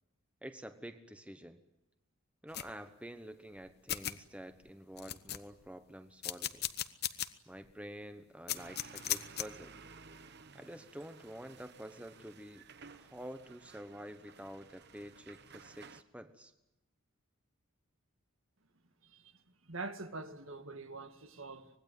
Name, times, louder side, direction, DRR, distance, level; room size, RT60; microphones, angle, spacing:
voice 1, 0.4-1.6 2.4-6.7 7.5-9.8 10.5-12.6 12.9-16.5, equal, 5° right, 1.1 m, -48 dB
sound 1, 2.5-2.7 3.6-3.7 3.9-4.1 4.6-4.7 5.0-5.7 6.2-7.3 7.7-7.8 8.5-9.5, left 12 dB, 50° left, 1.1 m, -36 dB
sound 2, 8.6-16.0, right 5 dB, 50° right, 1.1 m, -55 dB
voice 2, 19.0-19.3 19.7-21.7, right 3 dB, 65° right, 1.9 m, -44 dB
25.0 x 20.5 x 9.3 m
head